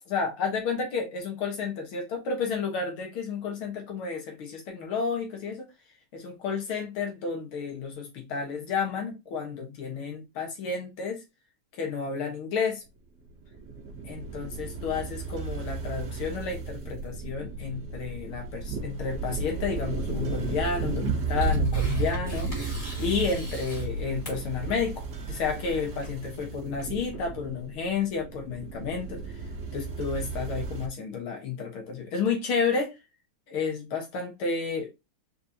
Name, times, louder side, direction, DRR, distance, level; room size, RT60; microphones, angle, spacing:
voice 1, 0.1-5.7 6.1-11.2 11.7-12.8 14.0-29.4 29.7-32.9 33.5-34.9, left 5 dB, 75° left, 2.2 m, -31 dB
sound 1, 13.3-30.9, right 4 dB, 45° right, 1.0 m, -33 dB
Tearing, 20.7-27.5, left 1 dB, 20° left, 2.7 m, -44 dB
4.3 x 4.2 x 2.8 m
omnidirectional pair, 2.4 m